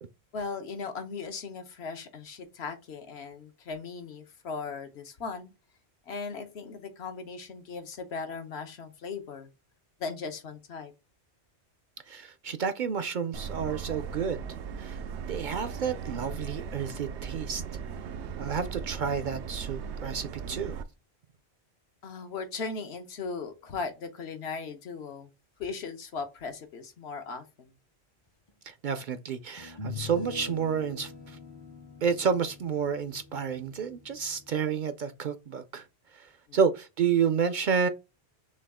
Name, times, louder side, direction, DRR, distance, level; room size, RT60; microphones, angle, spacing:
voice 1, 0.3-5.5 6.1-9.5 10.0-10.9 22.0-25.3 25.6-27.7 36.5-36.6, left 4 dB, 75° left, 1.2 m, -38 dB
voice 2, 12.1-14.4 14.8-15.0 15.3-17.6 18.4-20.8 28.6-31.4 32.0-35.8 36.1-37.9, right 6 dB, 60° right, 0.6 m, -30 dB
Subway metro underground, 13.3-20.8, right 6 dB, 90° right, 0.9 m, -38 dB
sound 1, 28.5-28.6 29.6-34.8, left 4 dB, 35° left, 0.5 m, -43 dB
6.2 x 2.3 x 3.5 m
omnidirectional pair, 1.1 m